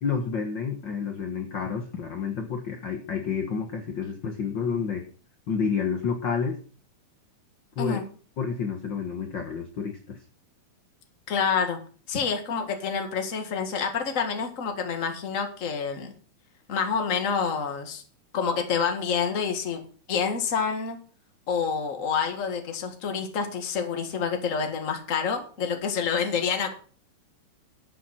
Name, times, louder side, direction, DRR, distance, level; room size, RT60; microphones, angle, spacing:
voice 1, 0.0-5.1 5.5-6.6 7.7-8.0 8.4-10.2, left 6 dB, 50° left, 5 dB, 1.6 m, -29 dB
voice 2, 11.3-11.8 12.1-16.1 16.7-18.0 18.3-19.8 20.1-21.0 21.5-26.7, left 6 dB, 30° left, 6 dB, 1.6 m, -28 dB
12.5 x 7.4 x 5.7 m, 0.40 s
omnidirectional pair, 3.6 m